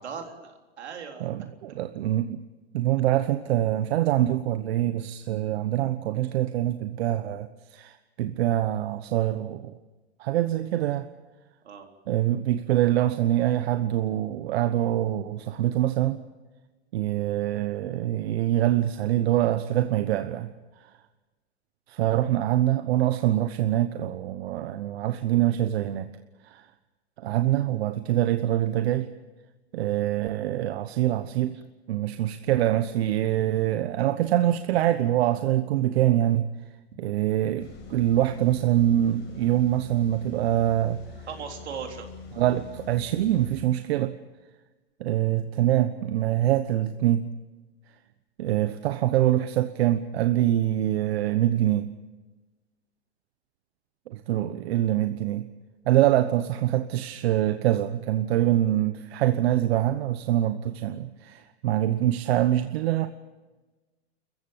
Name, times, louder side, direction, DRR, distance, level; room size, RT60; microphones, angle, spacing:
voice 1, 0.0-1.3 11.6-11.9 31.5-31.6 41.3-42.0, right 6 dB, 90° right, 4 dB, 3.8 m, -38 dB
voice 2, 1.2-2.4 2.7-9.7 10.2-11.1 12.1-16.2 16.9-20.5 21.9-26.1 26.4-26.7 27.2-29.1 29.7-31.6 31.9-36.5 37.0-41.0 42.4-44.1 45.0-47.3 48.4-51.9 54.1-55.5 55.9-63.1, right 13 dB, 70° right, 10 dB, 1.2 m, -24 dB
sound 1, 37.6-43.7, left 5 dB, 35° left, 5.4 m, -45 dB
28.5 x 15.0 x 8.8 m, 1.2 s
hypercardioid pair, 120°, 32 cm